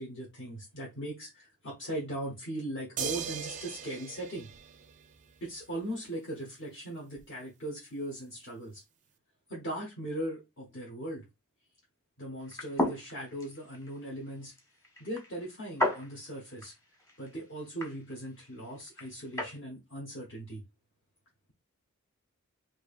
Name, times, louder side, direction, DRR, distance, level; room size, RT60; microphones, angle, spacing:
voice 1, 0.0-4.5 5.4-8.8 9.5-11.2 12.2-14.5 15.0-16.7 17.2-20.6, right 1 dB, 55° left, 1.2 m, -39 dB
sound 1, 3.0-5.4 7.2-7.3, right 8 dB, 35° right, 0.4 m, -39 dB
sound 2, 12.4-19.6, left 1 dB, 15° left, 1.2 m, -37 dB
4.6 x 2.7 x 2.4 m
head